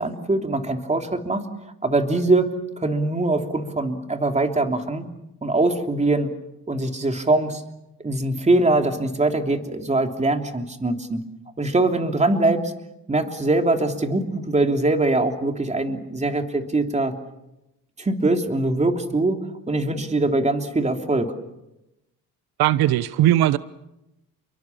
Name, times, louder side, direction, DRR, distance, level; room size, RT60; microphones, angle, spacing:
voice 1, 0.0-1.4 1.8-2.5 2.8-5.0 5.4-6.3 6.7-7.6 8.0-11.2 11.6-12.7 13.1-17.1 18.0-19.4 19.7-21.3, right 2 dB, 20° right, 5 dB, 3.1 m, -22 dB
voice 2, 22.6-23.6, right 13 dB, 80° right, 16 dB, 0.9 m, -18 dB
30.0 x 23.0 x 7.3 m, 0.91 s
cardioid pair, 105°, 37 cm